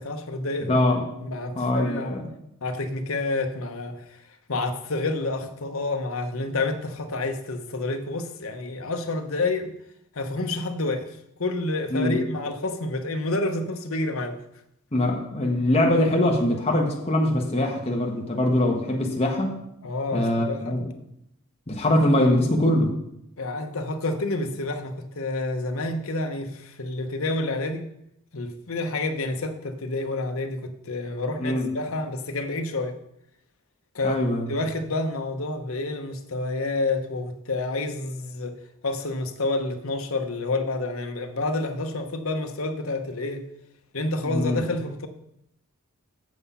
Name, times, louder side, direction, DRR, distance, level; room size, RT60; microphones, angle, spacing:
voice 1, 0.0-0.8 1.1-2.1 2.6-4.0 4.5-9.7 10.1-14.4 19.8-20.8 23.4-27.9 28.3-33.0 33.9-34.2 34.5-38.5 38.8-43.5 43.9-45.1, left 2 dB, 65° left, 6 dB, 1.0 m, -29 dB
voice 2, 0.7-1.0 1.5-2.3 11.9-12.2 14.9-19.6 20.1-20.9 21.7-22.9 31.4-31.7 34.0-34.5 44.2-44.6, left 1 dB, 30° left, -1 dB, 1.2 m, -23 dB
8.0 x 7.0 x 5.5 m, 0.78 s
head